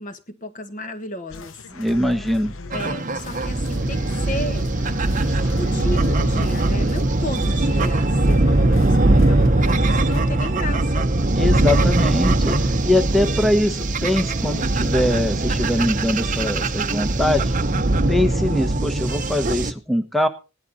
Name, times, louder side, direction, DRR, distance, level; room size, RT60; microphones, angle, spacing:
voice 1, 0.0-1.7 2.7-4.7 5.5-11.1, equal, 35° left, 1.6 m, -33 dB
sound 1, 1.3-10.5, left 3 dB, 65° left, 0.9 m, -39 dB
voice 2, 1.7-2.5 11.3-17.5 18.1-20.3, left 1 dB, ahead, 1.0 m, -22 dB
sound 2, 2.7-19.7, right 2 dB, 35° right, 0.9 m, -20 dB
17.0 x 11.5 x 4.2 m
head